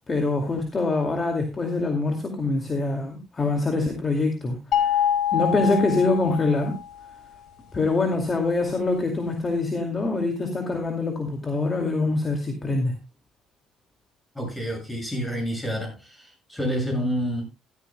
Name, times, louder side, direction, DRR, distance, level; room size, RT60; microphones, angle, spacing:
voice 1, 0.1-4.6 5.3-6.7 7.7-12.9, left 3 dB, 30° left, 4 dB, 2.3 m, -24 dB
sound 1, 4.7-7.0, left 9 dB, 65° left, 2.1 m, -25 dB
voice 2, 14.3-17.5, equal, 10° left, 2 dB, 7.8 m, -29 dB
16.0 x 13.0 x 2.3 m, 0.26 s
cardioid pair, 110°, 0 cm